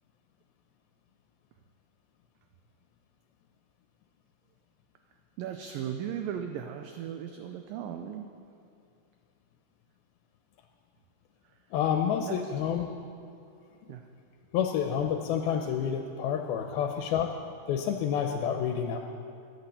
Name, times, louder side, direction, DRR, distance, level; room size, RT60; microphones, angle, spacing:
voice 1, 5.4-8.3 12.2-12.4 13.9-14.1, right 9 dB, 75° right, 5 dB, 2.2 m, -37 dB
voice 2, 11.7-12.9 14.5-17.3 17.7-19.0, left 8 dB, 80° left, 4 dB, 2.5 m, -29 dB
13.0 x 11.0 x 8.2 m, 2.4 s
omnidirectional pair, 4.6 m